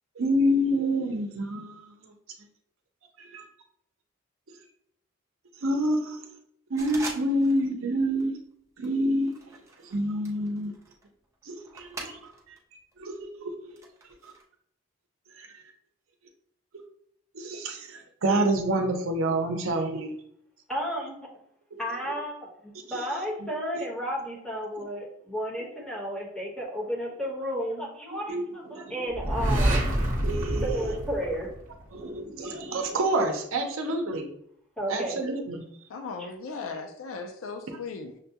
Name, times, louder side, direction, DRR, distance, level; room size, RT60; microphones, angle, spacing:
voice 1, 0.2-1.9 3.2-3.4 5.6-6.2 6.7-8.3 8.8-9.3 9.8-10.7 11.5-12.2 13.0-13.7 15.4-15.5 17.3-20.1 28.3-28.4 28.7-28.9 30.2-30.8 31.9-34.3 34.9-35.6, right 1 dB, 75° right, 3 dB, 0.7 m, -27 dB
sound 1, 6.8-7.7 8.0-8.3 8.8-12.6 12.9-14.4, right 2 dB, 15° right, 0.6 m, -43 dB
voice 2, 20.7-21.2 21.8-29.9 30.5-31.5 34.8-35.2 36.2-36.3, equal, 5° left, -4 dB, 1.0 m, -33 dB
sound 2, 29.1-32.0, right 1 dB, 40° right, 0.9 m, -27 dB
voice 3, 35.9-38.2, left 4 dB, 75° left, 5 dB, 0.4 m, -37 dB
6.3 x 2.2 x 2.8 m, 0.70 s
head